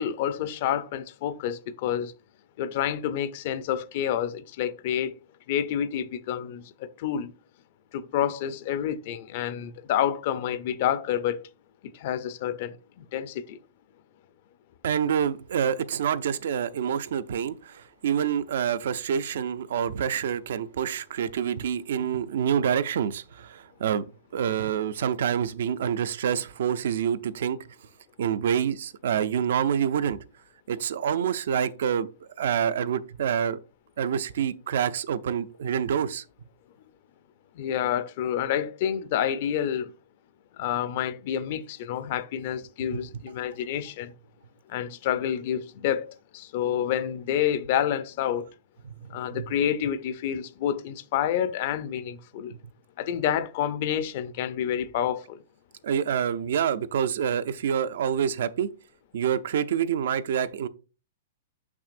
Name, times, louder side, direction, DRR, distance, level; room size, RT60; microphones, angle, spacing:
voice 1, 0.0-2.1 2.6-5.2 5.5-7.3 7.9-11.5 12.0-13.6 37.6-39.9 40.6-44.1 44.7-46.1 46.3-48.5 49.1-52.5 53.0-55.4, left 10 dB, 45° left, 0.5 m, -28 dB
voice 2, 14.8-24.0 24.3-27.6 28.2-30.2 30.7-32.1 32.4-33.6 34.0-36.2 42.9-43.0 49.3-49.5 55.8-58.7 59.1-60.7, right 8 dB, 65° right, 0.5 m, -27 dB
6.6 x 6.0 x 2.6 m
hypercardioid pair, 165°, 0 cm